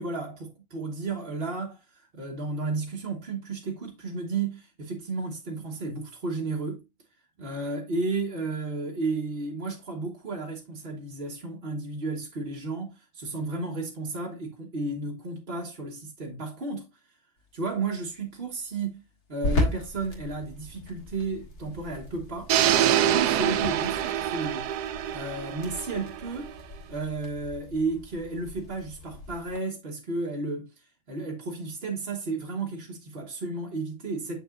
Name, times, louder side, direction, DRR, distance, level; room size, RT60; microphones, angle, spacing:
voice 1, 0.0-6.8 7.4-16.9 17.5-19.0 19.3-22.5 23.0-24.7 25.1-26.5 26.9-34.4, right 3 dB, 40° right, 1.3 m, -33 dB
sound 1, 17.4-29.6, left 2 dB, 80° left, 2.3 m, -37 dB
sound 2, 22.5-26.5, right 11 dB, 85° right, 1.2 m, -25 dB
7.9 x 6.1 x 2.4 m
omnidirectional pair, 1.6 m